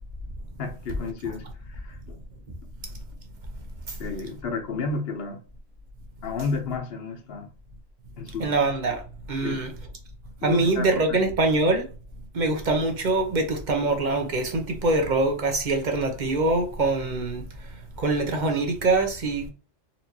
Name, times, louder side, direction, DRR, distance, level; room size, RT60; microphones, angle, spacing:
voice 1, 0.6-2.2 4.0-5.4 6.2-7.5 8.2-8.6 9.4-9.7 10.4-11.2, left 4 dB, 55° left, 1.1 m, -32 dB
voice 2, 8.4-9.0 9.3-9.7 10.4-11.9 12.3-17.7 18.0-19.5, right 2 dB, 45° right, 0.8 m, -24 dB
4.3 x 2.7 x 2.8 m
omnidirectional pair, 1.2 m